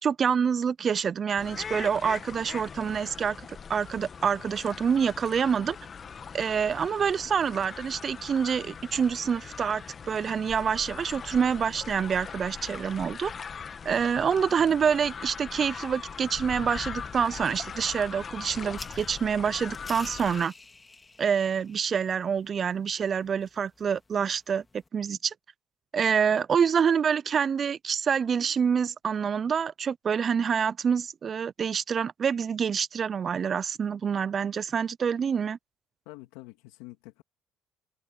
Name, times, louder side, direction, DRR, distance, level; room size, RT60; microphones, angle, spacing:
voice 1, 0.0-3.4 3.7-5.8 6.3-13.3 13.8-20.5 21.2-24.6 24.9-25.3 25.9-35.6, right 7 dB, 40° right, 0.4 m, -27 dB
sound 1, 1.4-20.5, left 6 dB, 40° left, 1.4 m, -41 dB
sound 2, 18.7-24.9, left 3 dB, 20° left, 3.0 m, -50 dB
voice 2, 36.1-37.2, left 20 dB, 90° left, 2.7 m, -46 dB
supercardioid pair, 85°, 0 cm